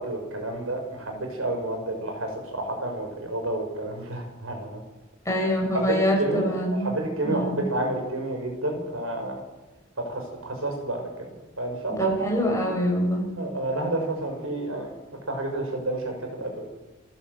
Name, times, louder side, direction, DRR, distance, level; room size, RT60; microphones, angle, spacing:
voice 1, 0.0-4.8 5.7-6.5 6.8-9.4 10.0-11.3 11.6-12.1 13.4-14.9 15.3-16.6, right 2 dB, 85° right, 3 dB, 6.0 m, -30 dB
voice 2, 5.3-6.9 7.2-7.6 12.0-13.3, equal, 15° left, -1 dB, 6.9 m, -25 dB
27.5 x 12.0 x 8.0 m, 1.1 s
head